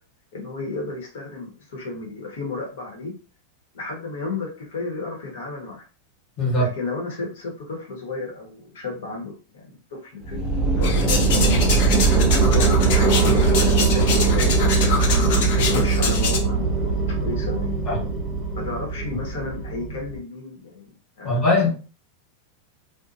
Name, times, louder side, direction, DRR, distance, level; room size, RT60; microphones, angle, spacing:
voice 1, 0.3-3.1 3.7-5.8 6.6-11.8 12.0-12.7 12.9-14.6 15.3-18.1 18.5-21.7, left 3 dB, 80° left, 0 dB, 1.1 m, -33 dB
voice 2, 6.4-6.7 17.9-18.0 21.2-21.7, left 2 dB, 20° left, -4 dB, 1.1 m, -20 dB
sound 1, 10.2-20.2, right 4 dB, 15° right, 0.6 m, -20 dB
sound 2, 10.8-16.4, left 4 dB, 55° left, 0.6 m, -26 dB
2.7 x 2.1 x 2.5 m, 0.36 s
supercardioid pair, 165°, 0 cm